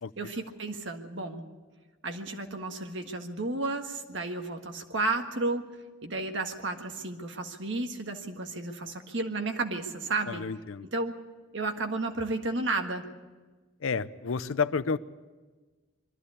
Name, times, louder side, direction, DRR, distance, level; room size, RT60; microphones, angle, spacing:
voice 1, 0.2-1.4 2.0-5.7 6.0-10.4 10.8-11.2 11.5-13.0, right 2 dB, 65° right, 5 dB, 1.6 m, -32 dB
voice 2, 10.3-10.8 13.8-15.0, left 5 dB, 80° left, 14 dB, 0.6 m, -30 dB
22.5 x 14.0 x 8.4 m, 1.3 s
head